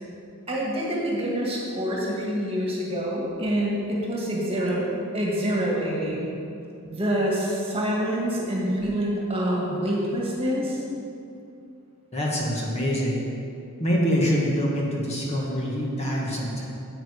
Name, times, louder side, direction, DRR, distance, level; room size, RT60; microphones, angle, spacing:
voice 1, 0.5-4.9 5.1-6.3 6.8-10.8, equal, 25° right, -4 dB, 1.9 m, -26 dB
voice 2, 12.1-13.2 13.8-16.7, equal, 30° left, -3 dB, 1.4 m, -25 dB
9.0 x 8.4 x 5.0 m, 2.6 s
head